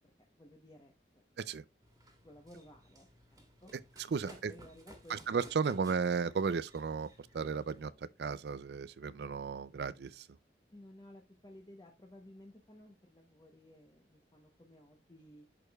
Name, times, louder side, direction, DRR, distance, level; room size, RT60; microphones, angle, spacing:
voice 1, 0.3-0.9 2.2-3.7 4.3-5.2 5.6-5.8 10.7-15.5, left 1 dB, 25° left, 0.9 m, -56 dB
Run, 1.8-7.8, right 1 dB, 20° right, 1.7 m, -58 dB
voice 2, 4.0-4.5 5.1-7.1 7.3-7.9 8.2-10.3, right 5 dB, 65° right, 0.4 m, -34 dB
11.0 x 5.0 x 2.3 m
head